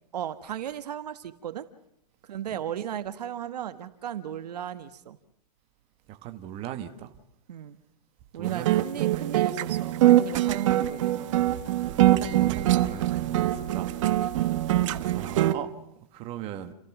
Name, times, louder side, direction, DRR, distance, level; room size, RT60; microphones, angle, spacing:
voice 1, 0.1-1.6 2.2-5.2 7.5-7.8 8.3-11.3, right 10 dB, 70° right, 1.6 m, -35 dB
voice 2, 6.1-7.1 8.3-8.8 12.3-13.9 14.7-15.7 16.1-16.7, right 11 dB, 25° right, 1.4 m, -38 dB
sound 1, 8.4-15.5, right 14 dB, 50° right, 1.2 m, -23 dB
30.0 x 15.0 x 6.1 m
hypercardioid pair, 150°, 21 cm